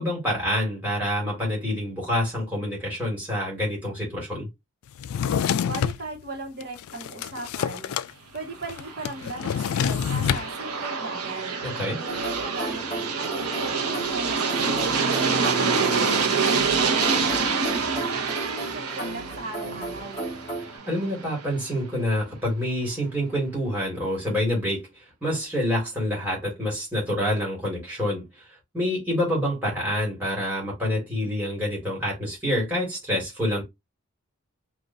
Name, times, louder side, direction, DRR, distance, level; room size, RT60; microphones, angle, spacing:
voice 1, 0.0-4.5 11.6-12.0 20.6-28.5 28.7-33.6, equal, 10° right, 2.1 m, -27 dB
Drawer open or close, 5.0-6.0 6.6-8.1 8.4-8.5 8.7-10.5, left 8 dB, 75° left, 0.3 m, -26 dB
voice 2, 5.6-7.9 8.3-11.6 12.0-14.8 15.3-20.2, right 2 dB, 45° right, 1.5 m, -37 dB
Aircraft, 8.6-21.5, right 5 dB, 90° right, 0.9 m, -27 dB
sound 1, 12.1-20.8, right 1 dB, 20° left, 2.8 m, -35 dB
4.9 x 2.9 x 2.6 m
head